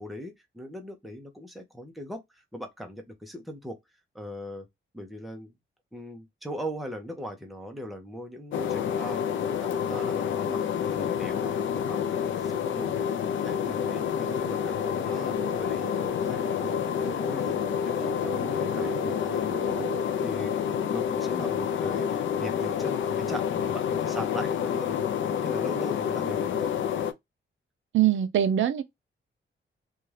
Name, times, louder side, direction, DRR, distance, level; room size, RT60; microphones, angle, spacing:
voice 1, 0.0-3.8 4.1-4.7 4.9-5.6 5.9-9.2 9.6-19.9 20.2-20.6 20.9-25.0 25.3-26.7, equal, ahead, 0.6 m, -40 dB
sound 1, 8.5-27.1, left 8 dB, 70° left, 0.4 m, -28 dB
sound 2, 12.5-20.0, right 5 dB, 35° right, 1.1 m, -41 dB
voice 2, 27.9-28.8, right 10 dB, 70° right, 0.4 m, -22 dB
2.6 x 2.3 x 3.1 m
wide cardioid pair, 145°, 20 cm